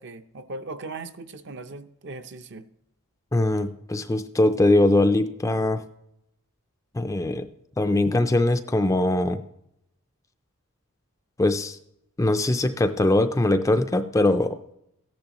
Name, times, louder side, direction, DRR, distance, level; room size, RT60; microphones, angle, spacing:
voice 1, 0.0-2.7, right 3 dB, 50° right, 9 dB, 0.6 m, -38 dB
voice 2, 3.3-5.8 6.9-7.5 7.8-9.4 11.4-11.8 12.2-14.6, left 2 dB, 15° left, 8 dB, 0.4 m, -21 dB
14.5 x 10.5 x 3.0 m, 0.77 s
head